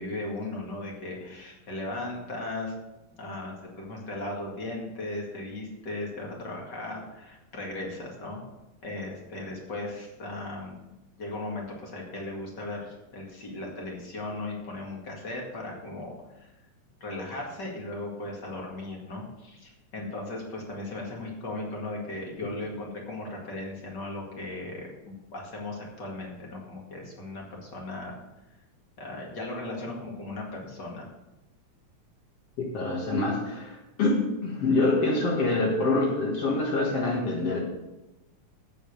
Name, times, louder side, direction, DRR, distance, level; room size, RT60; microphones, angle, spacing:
voice 1, 0.0-2.7 3.2-8.4 8.8-10.8 11.2-16.5 17.0-28.2 29.0-31.1, left 2 dB, 35° left, -1 dB, 2.4 m, -37 dB
voice 2, 32.6-37.6, left 2 dB, 55° left, -2 dB, 2.5 m, -26 dB
8.5 x 7.7 x 6.9 m, 0.99 s
omnidirectional pair, 3.6 m